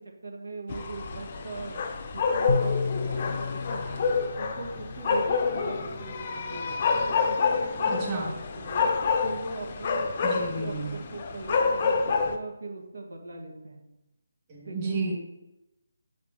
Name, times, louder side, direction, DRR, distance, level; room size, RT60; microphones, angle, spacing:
voice 1, 0.2-1.8 2.1-4.0 4.4-8.9 9.2-13.8 14.7-15.0, right 3 dB, 75° right, 2 dB, 1.8 m, -40 dB
sound 1, 0.7-12.4, left 5 dB, 35° left, 0.6 m, -28 dB
sound 2, 2.5-5.8, left 4 dB, 85° left, 0.9 m, -32 dB
voice 2, 7.9-8.3 10.2-10.9 14.5-15.1, right 3 dB, 25° right, -5 dB, 2.4 m, -32 dB
8.3 x 5.2 x 3.1 m, 0.96 s
figure-of-eight pair, 160°, 0 cm